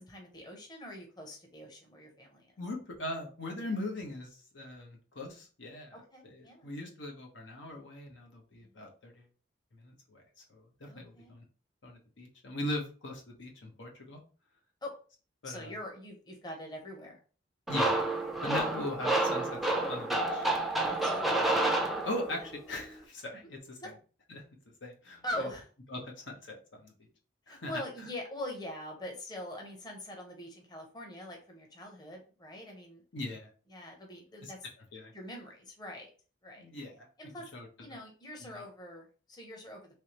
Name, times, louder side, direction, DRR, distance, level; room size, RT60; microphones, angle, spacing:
voice 1, 0.0-2.5 5.9-6.7 10.9-11.3 14.8-14.9 15.4-17.2 20.9-21.2 22.3-22.5 23.8-23.9 25.2-25.7 27.5-33.0 33.7-34.7 35.1-36.1 36.4-36.6 37.2-37.5 37.8-40.0, left 1 dB, 20° left, 1 dB, 0.8 m, -43 dB
voice 2, 2.6-9.3 9.7-10.2 10.5-11.4 11.8-14.2 15.4-15.7 17.7-18.0 18.4-19.6 19.9-20.5 21.8-23.8 24.3-24.4 24.8-25.2 25.9-26.9 27.5-27.8 33.1-33.5 34.4-34.5 34.9-35.1 36.6-37.1 37.5-37.7 38.4-38.6, left 1 dB, 80° left, 1 dB, 1.0 m, -40 dB
sound 1, 17.7-22.5, right 2 dB, ahead, 0.4 m, -29 dB
3.4 x 3.1 x 2.9 m, 0.37 s
head